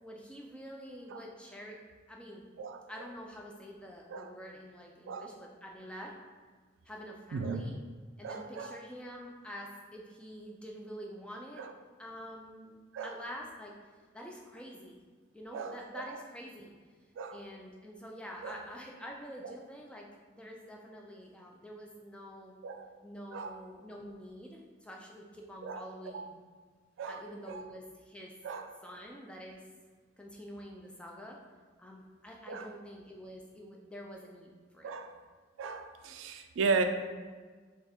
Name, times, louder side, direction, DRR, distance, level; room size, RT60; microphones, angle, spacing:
voice 1, 0.0-1.8 2.1-2.4 2.9-6.2 6.9-7.8 8.2-11.6 12.0-13.8 14.1-15.0 15.3-16.7 17.3-22.5 23.0-26.3 27.1-28.3 28.8-29.6 30.2-31.4 31.8-34.9, equal, 5° left, -1 dB, 0.4 m, -47 dB
voice 2, 8.2-8.8 11.6-11.7 12.9-13.2 15.5-16.2 17.2-17.4 18.4-18.6 19.4-19.5 22.6-22.9 23.3-23.6 25.6-25.8 26.1-26.3 27.0-27.6 28.4-28.7 32.5-32.7 34.8-35.1 35.6-36.8, right 4 dB, 85° right, 7 dB, 0.3 m, -36 dB
3.4 x 2.4 x 4.2 m, 1.5 s
head